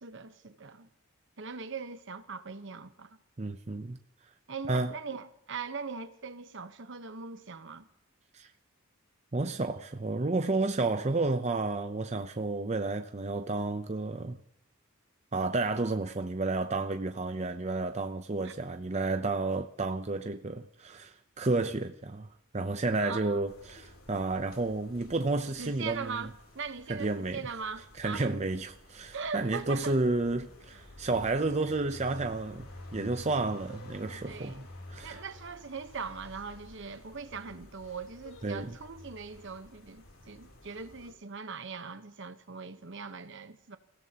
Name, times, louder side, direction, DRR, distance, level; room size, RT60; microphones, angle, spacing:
voice 1, 0.0-0.9 1.4-3.2 4.5-7.9 18.4-18.6 23.0-23.4 25.6-28.3 29.1-30.0 34.1-34.7 35.0-43.8, right 5 dB, 60° right, 1.1 m, -41 dB
voice 2, 3.4-4.0 4.7-4.9 8.3-8.5 9.3-14.4 15.3-22.3 22.5-26.3 26.9-27.4 28.0-34.6 34.9-35.2 38.4-38.7, right 3 dB, 30° right, 0.6 m, -31 dB
sound 1, 23.5-41.1, left 2 dB, 85° left, 3.4 m, -51 dB
29.0 x 16.0 x 2.9 m
head